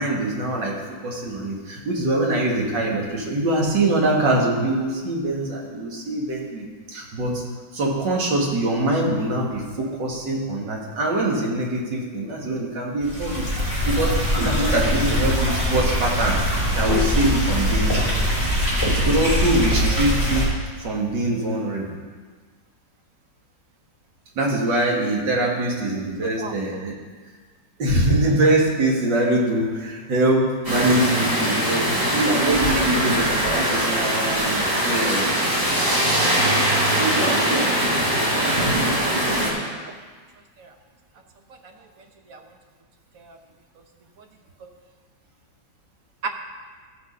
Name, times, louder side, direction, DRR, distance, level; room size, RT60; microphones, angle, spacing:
voice 1, 0.0-7.4 7.7-13.5 13.8-18.1 18.9-20.5 20.8-21.9 24.4-26.9 27.8-35.4 36.9-37.7, right 1 dB, 75° right, -2 dB, 2.4 m, -23 dB
sound 1, 13.0-20.5, equal, 10° right, 3.7 m, -22 dB
voice 2, 26.2-26.5 32.2-32.3 32.7-33.1 33.5-34.1 37.9-38.0 38.3-39.1 39.8-39.9 40.6-40.7 41.6-41.7 42.3-42.4 43.1-43.4 46.2-46.3, right 5 dB, 55° right, 4 dB, 1.2 m, -35 dB
sound 2, 30.6-39.5, right 1 dB, 35° right, 3.6 m, -21 dB
14.0 x 6.3 x 5.4 m, 1.5 s
omnidirectional pair, 2.0 m